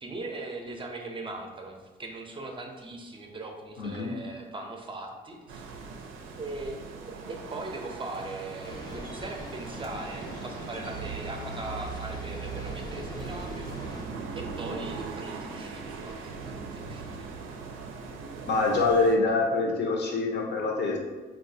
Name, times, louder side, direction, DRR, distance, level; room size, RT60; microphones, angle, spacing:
voice 1, 0.0-5.6 6.4-13.7 14.3-17.3, right 2 dB, 25° right, 2 dB, 0.5 m, -40 dB
voice 2, 3.8-4.2 18.5-21.0, left 3 dB, 60° left, 1 dB, 0.7 m, -25 dB
sound 1, 5.5-19.2, right 4 dB, 85° right, 0.4 m, -39 dB
sound 2, 8.6-14.0, left 1 dB, 20° left, 0.6 m, -42 dB
4.0 x 2.3 x 2.6 m, 1.3 s
cardioid pair, 90°, 20 cm